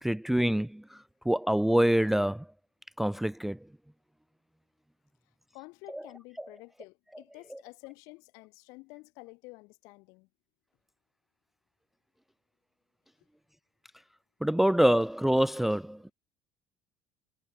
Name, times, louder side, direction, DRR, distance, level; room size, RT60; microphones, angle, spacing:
voice 1, 0.0-0.8 1.3-2.4 3.0-3.6 14.4-16.1, right 1 dB, 5° right, 0.3 m, -25 dB
voice 2, 5.5-10.3, left 27 dB, 65° left, 6.5 m, -50 dB
hypercardioid pair, 60°, 6 cm